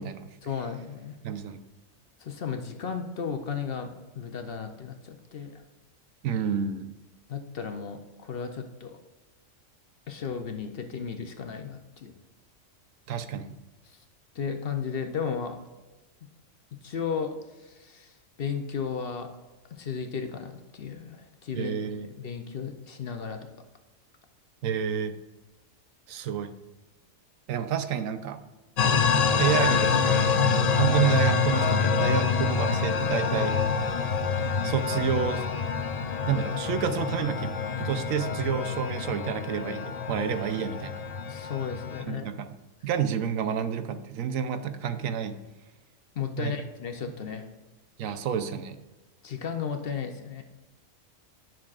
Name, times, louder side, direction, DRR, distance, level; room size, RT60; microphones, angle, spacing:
voice 1, 0.4-1.2 2.2-5.5 7.3-9.0 10.1-12.1 13.9-14.0 14.3-15.6 16.8-19.3 19.7-21.7 22.1-23.4 41.3-42.3 46.1-47.5 49.2-50.4, left 6 dB, 55° left, 6 dB, 0.8 m, -34 dB
voice 2, 1.2-1.6 6.2-6.9 13.1-13.6 21.5-22.1 24.6-25.2 26.1-26.5 27.5-28.4 29.3-30.3 30.8-33.6 34.6-35.5 36.3-41.0 42.1-42.5 42.8-45.4 46.4-46.5 48.0-48.8, right 8 dB, 85° right, 10 dB, 1.0 m, -29 dB
sound 1, 28.8-42.0, left 5 dB, 75° left, 0.3 m, -26 dB
10.0 x 6.0 x 2.4 m, 1.1 s
omnidirectional pair, 1.4 m